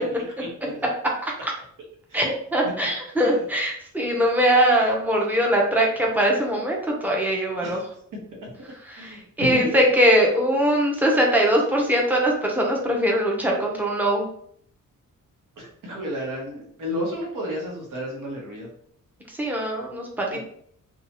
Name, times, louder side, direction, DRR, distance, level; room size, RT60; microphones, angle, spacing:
voice 1, 0.4-0.8 2.1-2.3 3.2-3.3 7.6-7.8 8.9-9.8 15.6-18.7 20.3-20.4, equal, 70° right, -2 dB, 1.1 m, -32 dB
voice 2, 2.5-7.8 8.9-14.3 19.3-20.4, equal, 5° right, -1 dB, 0.6 m, -21 dB
2.8 x 2.3 x 2.9 m, 0.64 s
wide cardioid pair, 130°, 33 cm